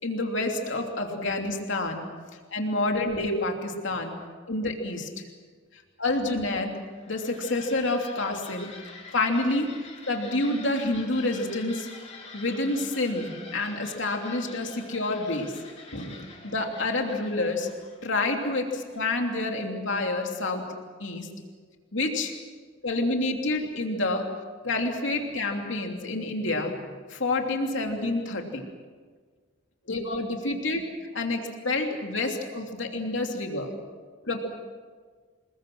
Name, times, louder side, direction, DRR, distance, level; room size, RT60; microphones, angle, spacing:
voice 1, 0.0-2.0 2.5-4.2 4.5-5.2 6.0-6.7 7.1-8.7 9.1-9.7 10.1-11.9 12.3-15.5 15.9-17.7 18.0-20.6 21.0-21.3 21.9-22.3 22.8-24.3 24.6-26.7 27.1-28.6 29.9-30.8 31.1-33.7 34.2-34.4, left 2 dB, 65° left, 2 dB, 3.0 m, -28 dB
sound 1, 6.8-19.3, left 4 dB, 35° left, 3.6 m, -47 dB
27.5 x 21.5 x 6.2 m, 1.5 s
head